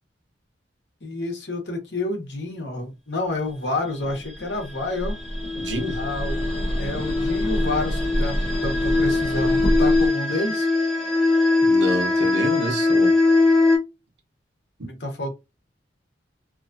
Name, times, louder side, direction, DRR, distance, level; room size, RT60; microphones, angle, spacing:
voice 1, 1.0-5.2 5.9-6.4 6.8-8.3 8.6-10.7 14.8-15.3, left 2 dB, 70° left, 1.0 m, -29 dB
sound 1, 4.0-10.1, equal, 25° left, 1.3 m, -28 dB
sound 2, 4.7-13.8, left 3 dB, ahead, 1.2 m, -22 dB
voice 2, 5.6-6.0 11.6-13.1 14.8-14.9, equal, 85° right, 1.0 m, -28 dB
2.9 x 2.4 x 2.6 m
head